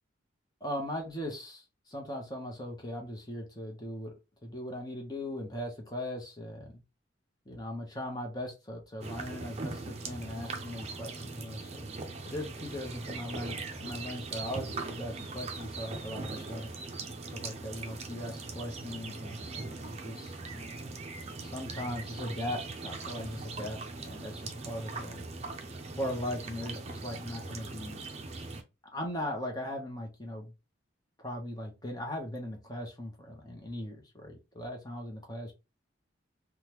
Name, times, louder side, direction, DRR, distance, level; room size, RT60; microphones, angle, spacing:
voice 1, 0.6-4.1 4.4-6.8 7.5-11.9 12.2-16.7 17.3-20.8 21.4-25.3 26.0-28.0 28.9-30.5 31.2-35.5, left 1 dB, 20° left, 1 dB, 0.9 m, -39 dB
sound 1, 9.0-28.6, right 3 dB, 30° right, 0.5 m, -40 dB
3.6 x 2.3 x 3.0 m, 0.26 s
head